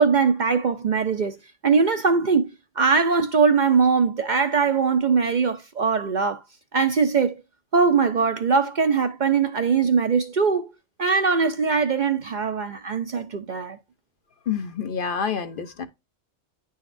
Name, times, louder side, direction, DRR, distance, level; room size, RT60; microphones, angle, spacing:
voice 1, 0.0-1.4 1.6-2.5 2.8-6.4 6.7-7.3 7.7-10.7 11.0-13.8, right 5 dB, 50° right, 0.6 m, -21 dB
voice 2, 14.5-15.9, left 7 dB, 55° left, 0.8 m, -28 dB
9.8 x 4.0 x 2.5 m
omnidirectional pair, 1.2 m